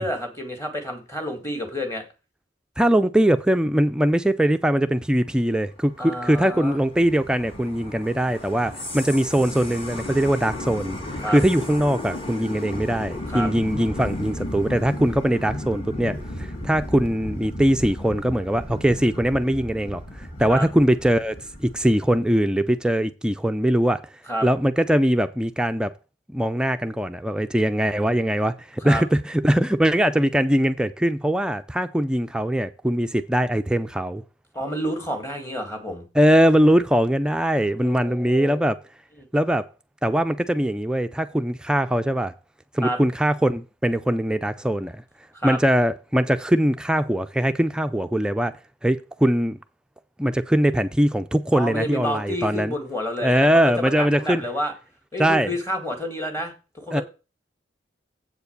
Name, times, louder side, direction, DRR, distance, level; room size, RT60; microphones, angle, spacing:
voice 1, 0.0-2.0 6.0-6.8 11.2-11.4 13.3-13.5 20.5-20.7 24.3-24.5 28.8-29.0 34.5-36.0 37.8-38.6 39.2-39.3 42.8-43.0 45.3-45.6 51.5-54.7 55.1-57.0, equal, 15° left, 2.0 m, -29 dB
voice 2, 2.8-11.0 11.3-24.0 24.4-25.9 26.3-34.2 36.2-38.8 39.3-39.7 40.0-42.3 42.7-45.0 45.4-48.5 48.8-49.6 50.2-52.7 53.2-54.4 55.2-55.5 56.9-57.0, equal, 5° right, 0.4 m, -21 dB
sound 1, 5.6-22.2, left 1 dB, 30° left, 1.9 m, -35 dB
7.8 x 4.7 x 6.6 m
head